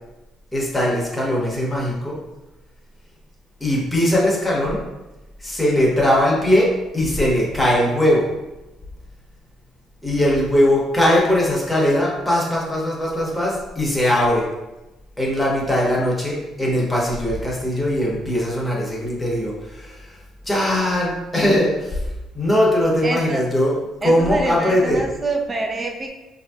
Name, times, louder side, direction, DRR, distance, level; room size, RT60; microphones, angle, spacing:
voice 1, 0.5-2.2 3.6-4.8 5.4-8.3 10.0-14.5 15.2-20.2 20.5-22.1 22.3-23.8 24.0-25.0, left 1 dB, 5° left, -4 dB, 0.8 m, -20 dB
voice 2, 23.0-23.4 24.0-26.1, right 2 dB, 20° right, 3 dB, 0.4 m, -26 dB
4.7 x 2.6 x 2.3 m, 1.0 s
cardioid pair, 150°, 0 cm